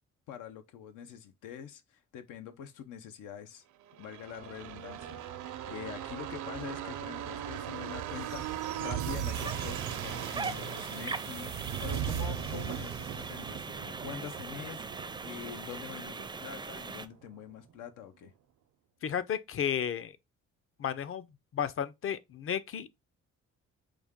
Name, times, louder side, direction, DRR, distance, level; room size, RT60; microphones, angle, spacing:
voice 1, 0.3-3.6 4.0-14.8 15.2-18.3, left 9 dB, 90° left, 0.7 m, -45 dB
sound 1, 3.9-17.4 17.7-17.8, right 10 dB, 75° right, 0.7 m, -38 dB
sound 2, 9.3-17.1, right 4 dB, 15° right, 0.4 m, -40 dB
voice 2, 19.0-20.1 20.8-21.3 21.5-23.0, left 8 dB, 45° left, 0.6 m, -33 dB
5.0 x 2.3 x 3.6 m
cardioid pair, 90°, 30 cm